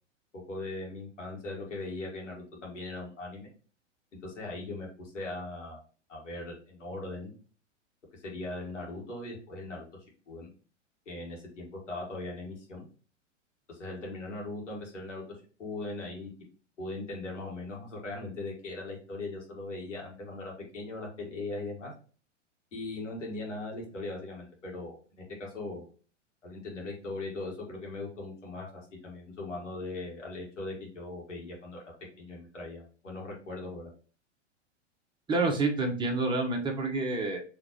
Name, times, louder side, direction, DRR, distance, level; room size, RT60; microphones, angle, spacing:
voice 1, 0.5-3.5 4.2-5.8 6.1-7.3 8.1-9.9 10.3-10.5 11.1-12.9 13.7-15.2 15.6-16.3 16.8-21.9 22.7-25.8 26.4-31.8 32.2-33.9, left 2 dB, 80° left, -2 dB, 2.0 m, -39 dB
voice 2, 35.3-37.4, right 3 dB, 15° right, 2 dB, 0.9 m, -28 dB
4.8 x 3.1 x 3.1 m, 0.38 s
hypercardioid pair, 105°, 37 cm